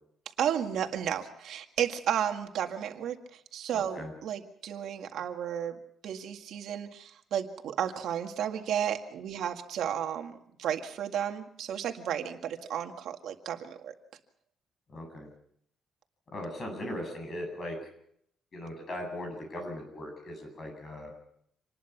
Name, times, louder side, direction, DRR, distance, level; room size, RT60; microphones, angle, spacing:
voice 1, 0.4-5.8 6.0-13.9, right 9 dB, 70° right, 5 dB, 1.9 m, -33 dB
voice 2, 3.7-4.1 14.9-15.3 16.3-17.9 18.5-21.1, left 1 dB, 35° left, 4 dB, 7.6 m, -39 dB
26.5 x 20.0 x 6.0 m, 0.69 s
cardioid pair, 155°, 0 cm